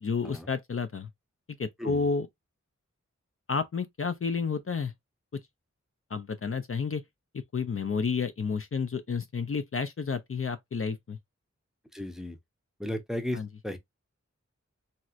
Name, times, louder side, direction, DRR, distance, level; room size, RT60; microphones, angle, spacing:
voice 1, 0.0-1.1 1.5-2.3 3.5-4.9 6.1-7.0 7.3-11.2 13.3-13.5, left 5 dB, 50° left, 0.4 m, -31 dB
voice 2, 11.9-12.4 12.8-13.8, left 1 dB, ahead, 0.6 m, -35 dB
3.1 x 2.8 x 2.4 m
wide cardioid pair, 45°, 29 cm